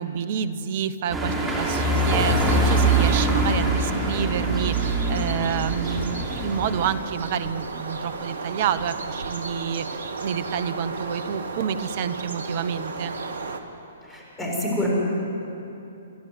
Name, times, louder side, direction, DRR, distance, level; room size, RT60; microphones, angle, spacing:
voice 1, 0.0-13.2, right 7 dB, 45° right, 13 dB, 1.0 m, -28 dB
sound 1, 1.1-6.9, right 2 dB, 10° right, 3.4 m, -23 dB
sound 2, 1.5-13.6, right 4 dB, 65° right, 1.6 m, -35 dB
voice 2, 14.0-14.9, left 1 dB, 10° left, -4 dB, 6.8 m, -28 dB
28.5 x 11.5 x 9.5 m, 2.8 s
figure-of-eight pair, 120°, 0 cm